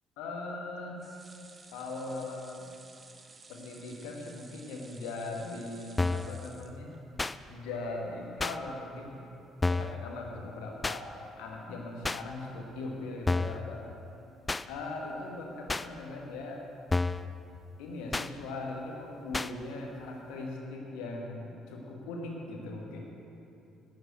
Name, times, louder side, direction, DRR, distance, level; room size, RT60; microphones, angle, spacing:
voice 1, 0.2-1.0 1.7-2.7 3.5-6.9 7.5-9.2 9.7-11.1 11.4-13.8 14.7-16.6 17.8-23.0, left 2 dB, 65° left, 0 dB, 1.5 m, -39 dB
sound 1, 1.0-7.3 7.7-7.8 8.1-8.2, right 3 dB, 30° right, 1.0 m, -55 dB
sound 2, 6.0-6.3 7.2-7.4 8.4-8.6 9.6-10.0 10.8-11.0 12.0-12.2 13.3-13.6 14.5-14.6 15.7-15.9 16.9-17.3 18.1-18.3 19.3-19.5, left 3 dB, 20° left, 0.4 m, -29 dB
11.0 x 7.6 x 7.9 m, 2.7 s
figure-of-eight pair, 50°, 0 cm